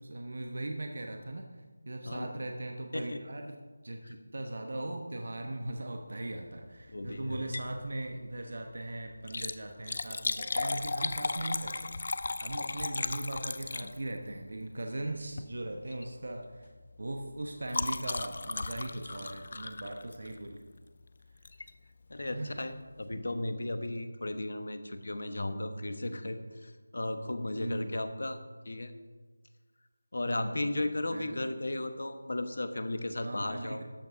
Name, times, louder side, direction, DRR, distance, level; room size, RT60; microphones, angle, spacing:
voice 1, 0.0-3.6 3.8-11.9 12.4-16.7 17.0-20.6 22.3-22.6 27.5-27.9 30.2-30.7 31.1-31.5 33.2-33.8, right 1 dB, 45° right, 3 dB, 1.0 m, -39 dB
voice 2, 6.9-7.4 22.1-28.4 28.6-28.9 30.1-33.8, left 1 dB, 55° left, 9 dB, 1.2 m, -35 dB
Liquid, 7.3-7.8 8.1-8.2 9.1-14.3 15.3-15.5 15.9-16.1 16.4-20.5 21.4-21.7 22.2-22.3 22.5-22.6, left 3 dB, 30° left, 0.4 m, -36 dB
13.0 x 7.6 x 5.7 m, 1.4 s
figure-of-eight pair, 180°, 0 cm